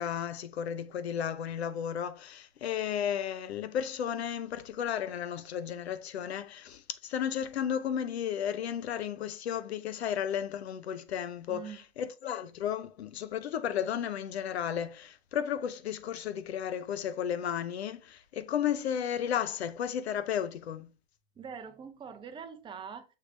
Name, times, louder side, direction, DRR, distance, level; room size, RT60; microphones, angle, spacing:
voice 1, 0.0-20.9, left 9 dB, 85° left, 0.7 m, -33 dB
voice 2, 11.5-11.8 21.4-23.1, right 6 dB, 15° right, 0.6 m, -43 dB
6.4 x 3.2 x 2.5 m
hypercardioid pair, 110°, 31 cm